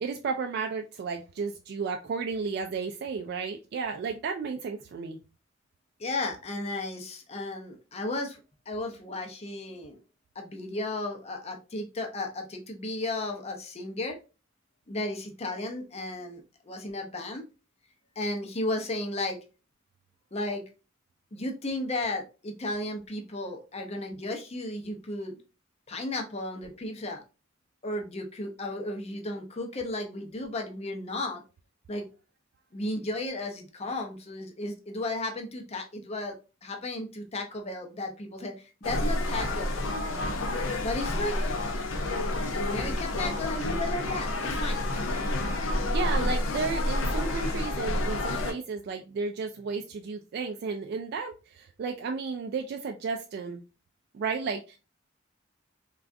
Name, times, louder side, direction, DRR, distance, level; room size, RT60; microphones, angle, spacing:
voice 1, 0.0-5.2 45.9-53.6 54.1-54.8, right 5 dB, 55° right, 4 dB, 0.3 m, -33 dB
voice 2, 6.0-8.4 8.7-10.0 10.4-14.2 14.9-17.4 18.2-19.4 20.3-20.6 21.3-25.4 25.9-27.2 27.8-31.4 31.9-32.1 32.7-36.4 36.6-39.7 40.8-41.4 42.5-45.1, left 2 dB, 30° left, 4 dB, 0.6 m, -34 dB
sound 1, 38.8-48.5, left 1 dB, 85° left, 0.5 m, -29 dB
3.4 x 2.3 x 2.5 m, 0.31 s
head